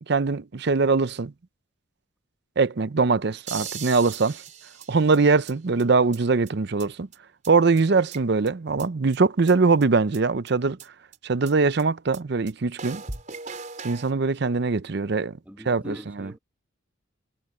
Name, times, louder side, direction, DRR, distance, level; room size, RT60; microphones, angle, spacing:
voice 1, 0.0-1.3 2.6-4.4 4.9-7.1 7.5-10.8 11.2-13.0 13.8-15.4 15.7-16.3, right 4 dB, 55° right, 0.6 m, -22 dB
sound 1, 3.5-5.5 5.8-5.9 6.1-6.2 6.5-6.6 6.8-6.9 7.1-7.2 7.4-7.5 7.8-8.5 8.8-8.9 9.1-9.2 9.5-9.6 9.8-9.9 10.1-10.2 10.5-10.6 10.8-10.9 11.1-11.2 11.5-11.6 11.8-11.9 12.1-12.2 12.5-12.6 12.8-14.1, right 5 dB, 40° right, 4.3 m, -38 dB
voice 2, 15.4-16.4, equal, 10° right, 1.6 m, -41 dB
head